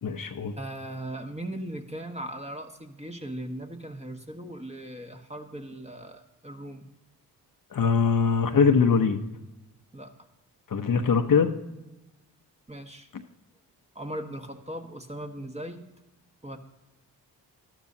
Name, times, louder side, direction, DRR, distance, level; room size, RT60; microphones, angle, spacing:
voice 1, 0.0-0.5 7.7-9.2 10.7-11.5, left 5 dB, 50° left, 7 dB, 0.9 m, -22 dB
voice 2, 0.5-6.9 9.9-10.1 12.7-13.1 13.9-15.8 16.4-16.6, right 1 dB, 15° right, 4 dB, 1.3 m, -38 dB
12.0 x 12.0 x 2.8 m, 1.0 s
supercardioid pair, 45°, 41 cm